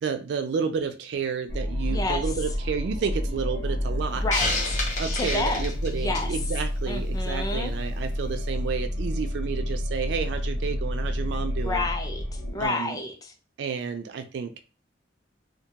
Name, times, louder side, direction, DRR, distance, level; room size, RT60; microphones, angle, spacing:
voice 1, 0.0-4.2 5.0-11.8 12.6-13.0 13.6-14.6, right 6 dB, 65° right, 7 dB, 0.3 m, -31 dB
sound 1, 1.5-12.7, equal, 90° left, 0.7 m, -29 dB
voice 2, 1.9-2.2 4.1-4.8 5.1-6.4 6.9-7.7 11.6-13.3, left 3 dB, 20° left, 5 dB, 0.4 m, -30 dB
Hiss, 4.3-6.4, left 2 dB, 40° left, 0.7 m, -29 dB
2.2 x 2.1 x 2.8 m, 0.33 s
head